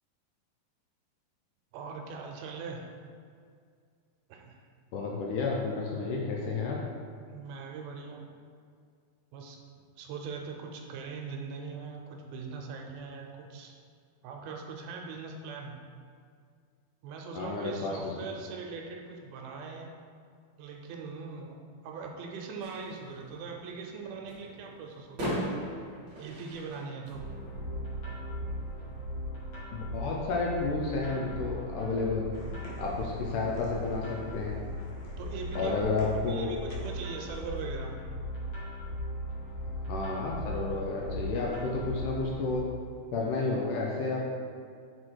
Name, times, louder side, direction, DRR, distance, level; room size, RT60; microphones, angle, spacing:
voice 1, 1.7-2.9 4.3-4.6 7.3-8.3 9.3-9.6 10.0-13.7 14.2-15.8 17.0-19.9 20.6-25.6 26.2-27.3 35.2-38.0, right 5 dB, 80° right, 2 dB, 2.4 m, -41 dB
voice 2, 4.9-6.8 17.3-18.1 29.7-32.2 32.8-34.6 35.6-36.5 39.9-42.7 43.1-44.2, left 3 dB, 80° left, -2 dB, 1.9 m, -31 dB
sound 1, 22.6-29.1, equal, 50° right, 1.3 m, -40 dB
sound 2, 27.1-42.6, equal, 45° left, 1.6 m, -38 dB
sound 3, 32.3-37.6, equal, 60° left, 1.9 m, -51 dB
6.2 x 4.6 x 4.5 m, 2.2 s
omnidirectional pair, 4.4 m